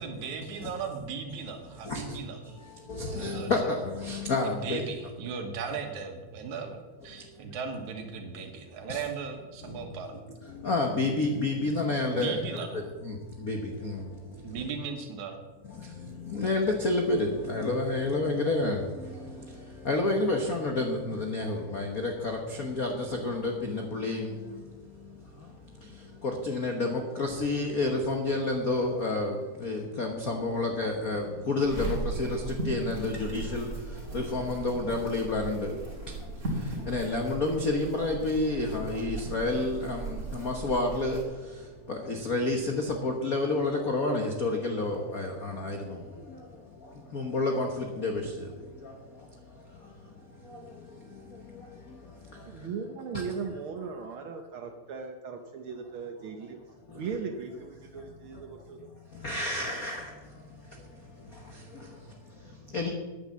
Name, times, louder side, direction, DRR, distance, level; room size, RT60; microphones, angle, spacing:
voice 1, 0.0-2.4 3.1-3.5 4.4-10.2 12.1-12.9 14.4-15.4, right 5 dB, 70° right, 5 dB, 2.7 m, -37 dB
voice 2, 1.8-2.2 2.6-4.8 7.1-7.6 8.9-9.0 9.6-9.9 10.4-14.7 15.7-52.7 53.1-53.2 56.9-57.1 58.0-58.1 58.3-58.8 59.1-62.9, left 2 dB, 85° left, 2 dB, 0.7 m, -31 dB
sound 1, 31.6-41.2, right 3 dB, 25° right, 3.0 m, -37 dB
voice 3, 52.4-56.6 56.9-58.9, right 5 dB, 90° right, 5 dB, 1.1 m, -38 dB
9.7 x 9.6 x 7.5 m, 1.3 s
omnidirectional pair, 3.6 m